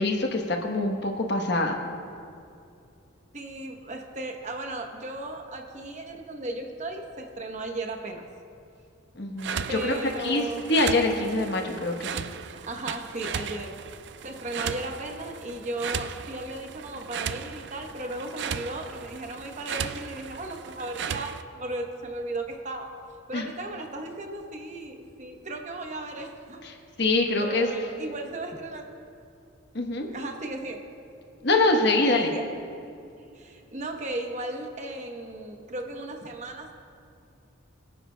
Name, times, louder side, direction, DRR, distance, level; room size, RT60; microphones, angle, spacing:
voice 1, 0.0-1.8 9.2-10.0 10.2-10.4 10.7-12.2 23.3-23.5 26.6-27.7 29.7-30.1 31.4-32.3, left 2 dB, 55° left, 3 dB, 1.1 m, -24 dB
voice 2, 3.3-8.3 9.7-10.6 12.4-13.8 14.2-22.9 23.3-26.6 27.4-28.9 30.1-30.8 32.1-32.5 33.3-36.7, right 2 dB, 35° right, 3 dB, 0.9 m, -36 dB
sound 1, 9.4-21.4, right 7 dB, 55° right, 0.4 m, -36 dB
23.5 x 9.8 x 2.2 m, 2.6 s
head